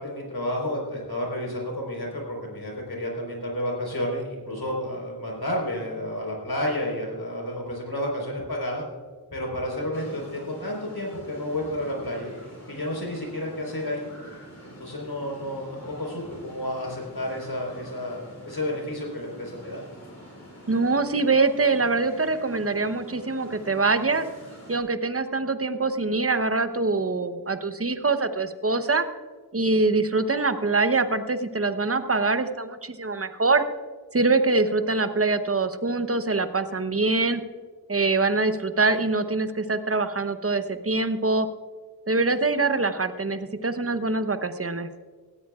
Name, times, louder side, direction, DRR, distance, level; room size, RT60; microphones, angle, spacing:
voice 1, 0.0-8.8 9.3-12.3 12.7-14.0 14.6-19.8, left 1 dB, 75° left, -1 dB, 4.3 m, -31 dB
sound 1, 9.9-24.8, equal, 45° left, 4.4 m, -46 dB
voice 2, 20.7-24.3 24.7-29.1 29.5-33.6 34.1-37.4 37.9-41.5 42.1-44.9, right 3 dB, 35° right, 9 dB, 0.9 m, -24 dB
18.0 x 14.0 x 2.4 m, 1.5 s
wide cardioid pair, 45°, 38 cm